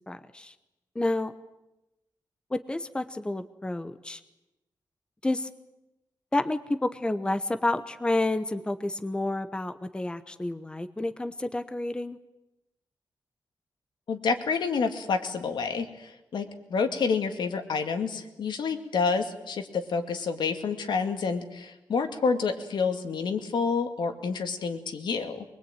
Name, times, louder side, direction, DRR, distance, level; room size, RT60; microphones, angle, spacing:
voice 1, 0.1-0.5 0.9-1.3 2.5-4.2 5.2-5.5 6.3-12.2, left 2 dB, 10° left, 11 dB, 0.9 m, -30 dB
voice 2, 14.1-25.4, left 5 dB, 80° left, 7 dB, 2.4 m, -28 dB
23.5 x 22.0 x 9.1 m, 0.95 s
wide cardioid pair, 160°, 8 cm